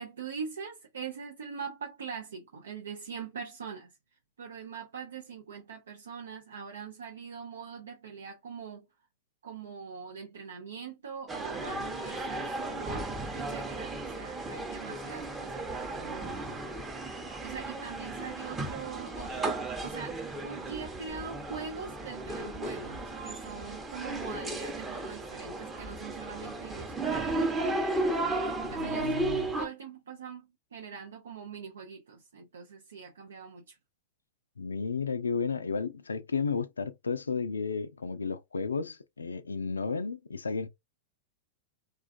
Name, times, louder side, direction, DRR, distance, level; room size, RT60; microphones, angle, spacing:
voice 1, 0.0-3.9 4.4-8.8 9.4-13.1 13.3-16.6 17.4-20.1 20.4-27.8 28.2-29.1 29.6-33.8, right 6 dB, 80° right, 0.5 m, -42 dB
sound 1, 11.3-29.7, right 2 dB, 15° right, 0.7 m, -34 dB
voice 2, 28.7-29.6 34.6-40.7, left 5 dB, 90° left, 0.3 m, -33 dB
2.4 x 2.3 x 2.4 m
hypercardioid pair, 100°, 0 cm